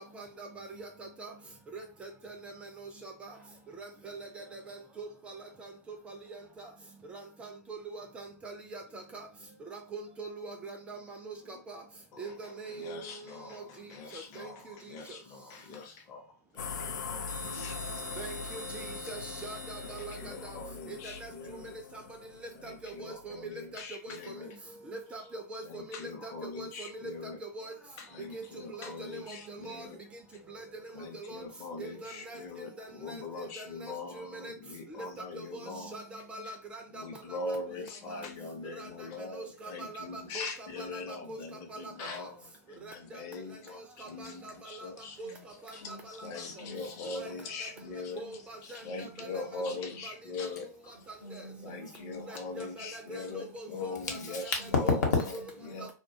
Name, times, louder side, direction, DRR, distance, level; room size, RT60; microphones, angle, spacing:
voice 1, 0.1-1.3 1.7-2.5 2.8-3.3 3.8-5.4 6.1-6.7 7.1-9.3 9.7-11.8 12.2-13.0 13.5-13.6 14.1-14.5 18.2-20.6 21.0-21.3 22.6-23.4 24.0-24.2 24.9-25.8 26.2-26.3 26.6-26.9 27.4-27.7 28.3-28.4 28.7-29.4 29.6-29.9 30.5-30.6 31.3-31.4 31.8-32.4 32.8-33.2 33.6-34.5 35.4-35.5 35.9-37.0 38.1-38.2 38.8-38.9 39.4-41.0 41.3-41.4 41.7-41.8 42.8-42.9 44.0-44.5 45.2-45.3 46.2-46.3 47.2-47.3 48.2-49.6 50.0-50.1 52.3-54.4 54.9-55.0, right 3 dB, 10° right, 4 dB, 0.3 m, -43 dB
voice 2, 12.1-18.1 19.8-21.7 22.5-24.5 25.6-27.4 28.0-30.0 30.9-36.0 36.4-36.6 36.9-45.2 45.8-48.2 48.6-50.7 51.6-55.0 55.6-55.9, left 3 dB, 35° left, 3 dB, 0.6 m, -42 dB
sound 1, 16.6-23.4, left 5 dB, 90° left, 0.4 m, -41 dB
sound 2, 17.3-20.8, right 8 dB, 75° right, 0.5 m, -47 dB
voice 3, 45.7-47.3 47.8-47.9 48.2-48.4 48.6-50.0 51.2-55.9, left 4 dB, 75° left, 1 dB, 1.0 m, -36 dB
2.3 x 2.2 x 2.7 m, 0.34 s
hypercardioid pair, 140°, 10 cm